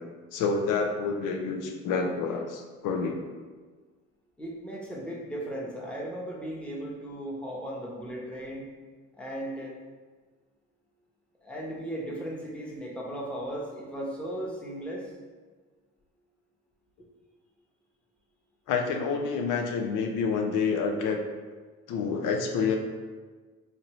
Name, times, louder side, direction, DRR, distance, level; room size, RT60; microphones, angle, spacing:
voice 1, 0.3-3.2 18.7-21.2 21.9-22.8, left 5 dB, 85° left, 3 dB, 0.5 m, -28 dB
voice 2, 4.4-8.7 9.2-9.7 11.4-15.1 17.0-17.1, right 1 dB, 5° left, -4 dB, 0.8 m, -36 dB
4.3 x 2.6 x 3.0 m, 1.4 s
cardioid pair, 90°, 30 cm